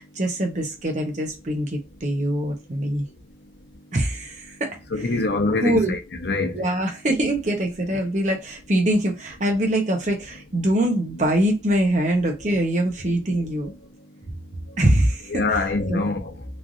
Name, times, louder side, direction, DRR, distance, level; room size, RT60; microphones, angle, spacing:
voice 1, 0.0-3.0 3.9-4.8 5.6-6.0 6.5-13.7 14.8-16.1, right 1 dB, 40° right, 0.7 m, -23 dB
voice 2, 4.9-6.6 12.8-12.9 13.6-13.7 15.3-16.4, left 3 dB, 65° left, 0.7 m, -25 dB
3.1 x 2.5 x 2.4 m
head